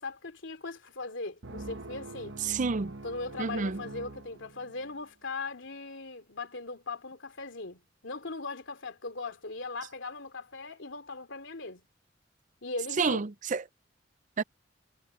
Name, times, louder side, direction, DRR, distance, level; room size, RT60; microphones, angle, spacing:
voice 1, 0.0-2.4 3.0-11.9 12.6-13.2, left 3 dB, 85° left, 2.7 m, -39 dB
sound 1, 1.4-5.0, right 2 dB, 65° right, 1.2 m, -44 dB
voice 2, 2.4-2.9 3.4-3.8 13.0-13.6 14.4-14.5, right 4 dB, 45° right, 0.5 m, -29 dB
head